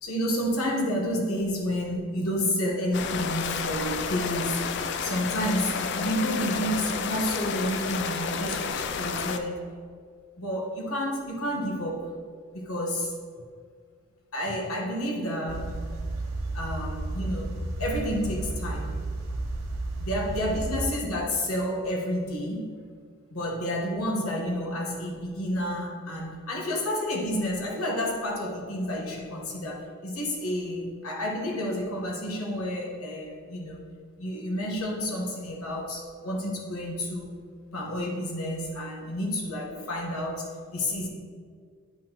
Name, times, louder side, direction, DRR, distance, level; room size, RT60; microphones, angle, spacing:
voice 1, 0.0-9.6 10.4-12.1 12.5-13.1 14.3-15.7 16.5-19.0 20.0-22.7 23.3-33.8 34.2-37.4 37.7-41.1, equal, 90° left, -1 dB, 1.2 m, -30 dB
sound 1, 2.9-9.4, left 6 dB, 50° left, 0.3 m, -31 dB
sound 2, 15.5-20.9, right 2 dB, 90° right, 0.8 m, -32 dB
8.6 x 5.8 x 2.9 m, 2.1 s
head